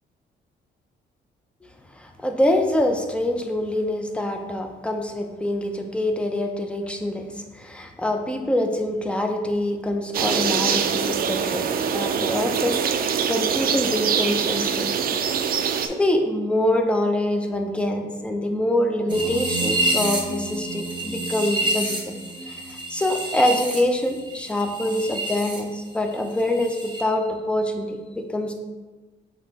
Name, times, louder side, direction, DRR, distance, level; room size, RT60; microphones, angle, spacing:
voice 1, 1.6-14.9 15.8-22.2 22.4-28.5, left 1 dB, 5° left, 4 dB, 0.5 m, -25 dB
sound 1, 10.1-15.9, right 7 dB, 50° right, 0.4 m, -24 dB
sound 2, 19.1-25.6 25.9-27.0, right 1 dB, 25° right, 1.3 m, -28 dB
5.8 x 3.1 x 2.8 m, 1.2 s
cardioid pair, 90°, 20 cm